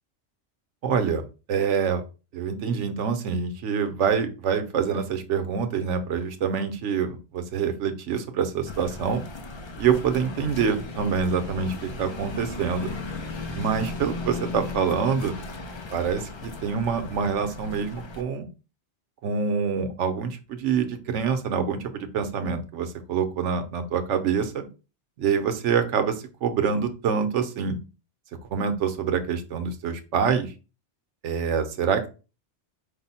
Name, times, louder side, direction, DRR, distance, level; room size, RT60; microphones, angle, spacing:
voice 1, 0.8-1.2 1.5-2.0 2.3-9.2 9.8-12.9 13.5-15.4 15.9-18.5 19.2-24.7 25.2-27.8 28.5-30.5 31.2-32.1, right 6 dB, 90° right, 8 dB, 1.0 m, -26 dB
sound 1, 8.7-18.2, left 3 dB, 50° left, 0.3 m, -36 dB
5.1 x 2.0 x 4.0 m, 0.32 s
omnidirectional pair, 1.2 m